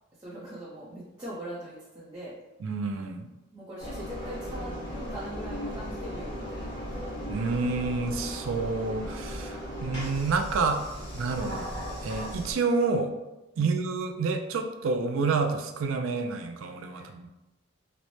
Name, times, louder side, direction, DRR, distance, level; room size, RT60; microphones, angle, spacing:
voice 1, 0.2-2.4 3.5-6.7 13.6-13.7 16.9-17.2, right 1 dB, 20° right, -8 dB, 0.6 m, -41 dB
voice 2, 2.6-3.3 7.3-10.8 11.1-11.7 12.0-13.1 13.6-17.3, right 4 dB, 80° right, 5 dB, 0.4 m, -29 dB
Engine, 3.8-12.5, equal, 60° left, 1.4 m, -37 dB
4.0 x 2.1 x 3.1 m, 1.0 s
head